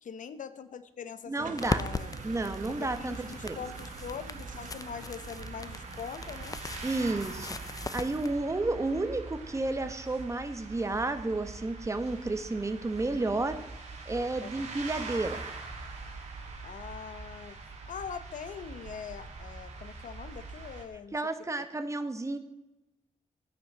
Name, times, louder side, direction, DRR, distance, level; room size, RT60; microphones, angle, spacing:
voice 1, 0.0-2.1 2.7-6.6 14.4-14.5 16.6-17.6 17.9-21.7, left 7 dB, 80° left, 12 dB, 1.0 m, -43 dB
voice 2, 1.3-1.8 2.2-3.2 3.4-3.6 6.8-13.6 14.1-15.4 21.1-22.4, right 2 dB, 20° right, 8 dB, 1.3 m, -31 dB
sound 1, 1.4-8.6, right 6 dB, 90° right, 1.4 m, -48 dB
sound 2, 1.6-8.3, left 4 dB, 25° left, 0.6 m, -39 dB
sound 3, 1.6-20.8, right 3 dB, 60° right, 3.5 m, -43 dB
16.0 x 9.4 x 6.1 m, 0.96 s
wide cardioid pair, 115°, 13 cm